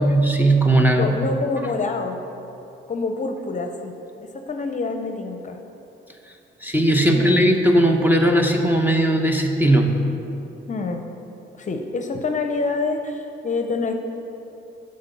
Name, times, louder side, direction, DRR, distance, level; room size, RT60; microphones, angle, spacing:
voice 1, 0.0-1.2 6.6-10.0, right 1 dB, 10° right, 3 dB, 0.9 m, -18 dB
voice 2, 1.0-2.2 2.9-3.9 4.2-5.6 7.1-7.4 10.7-11.0 11.6-13.9, left 3 dB, 40° left, 5 dB, 0.7 m, -26 dB
8.0 x 5.3 x 6.8 m, 2.9 s
cardioid pair, 90°, 20 cm